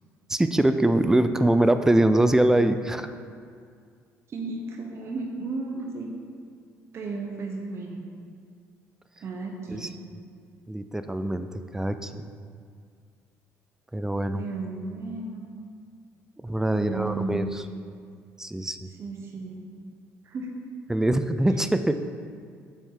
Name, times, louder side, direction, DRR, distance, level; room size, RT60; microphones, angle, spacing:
voice 1, 0.3-3.1 9.7-9.9 10.7-11.5 11.7-12.3 13.9-14.4 16.4-17.6 18.4-18.9 20.9-22.0, right 1 dB, 10° right, 9 dB, 0.3 m, -23 dB
voice 2, 4.3-6.2 6.9-8.1 9.2-10.0 14.4-15.5 16.7-17.6 19.0-19.6 20.2-20.6, right 3 dB, 45° right, 1 dB, 0.8 m, -34 dB
7.1 x 4.2 x 3.8 m, 2.1 s
cardioid pair, 95°, 6 cm